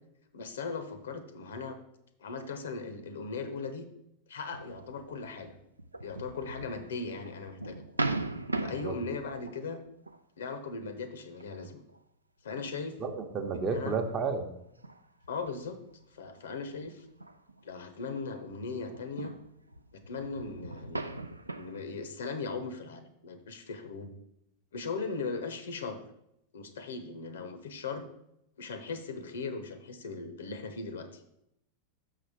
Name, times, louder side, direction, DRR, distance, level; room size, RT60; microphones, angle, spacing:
voice 1, 0.3-1.8 2.2-3.9 4.3-5.6 6.0-7.8 8.6-9.8 10.4-11.8 12.4-13.0 13.5-14.0 15.3-15.8 16.1-17.0 17.6-19.4 19.9-21.1 21.6-24.1 24.7-26.0 26.5-28.1 28.6-31.2, left 4 dB, 65° left, 10 dB, 0.8 m, -38 dB
sound 1, 4.5-10.2 10.6-10.9 11.4-12.0 12.6-18.3 18.5-21.8, right 2 dB, 85° right, 0.4 m, -39 dB
voice 2, 8.6-8.9 13.0-14.5, right 4 dB, 30° right, 5 dB, 0.8 m, -32 dB
6.3 x 5.7 x 4.9 m, 0.79 s
figure-of-eight pair, 90°, 0 cm